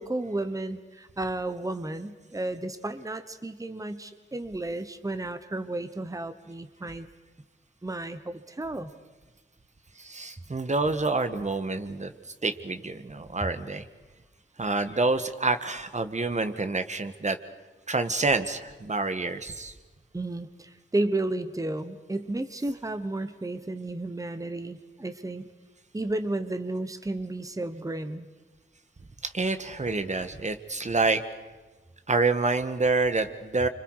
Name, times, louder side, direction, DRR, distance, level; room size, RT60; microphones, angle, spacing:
voice 1, 0.0-7.1 7.8-8.9 20.1-25.5 25.9-28.3, right 2 dB, 15° right, 10 dB, 1.1 m, -32 dB
voice 2, 10.0-12.1 12.4-13.8 14.6-17.4 17.9-19.7 29.2-31.2 32.1-33.7, right 3 dB, 35° right, 9 dB, 1.5 m, -27 dB
30.0 x 25.5 x 4.8 m, 1.2 s
wide cardioid pair, 110°, 21 cm